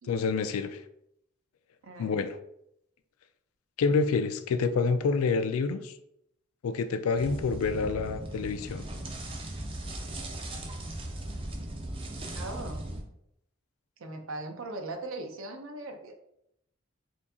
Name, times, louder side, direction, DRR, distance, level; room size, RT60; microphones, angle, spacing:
voice 1, 0.1-0.8 2.0-2.4 3.8-5.9 6.6-8.8, left 4 dB, 85° left, 10 dB, 0.4 m, -27 dB
voice 2, 1.8-2.2 12.3-12.9 14.0-16.1, right 2 dB, 70° right, 5 dB, 0.6 m, -39 dB
sound 1, 7.2-13.0, right 1 dB, 25° right, 0.4 m, -38 dB
4.4 x 2.7 x 2.7 m, 0.77 s
head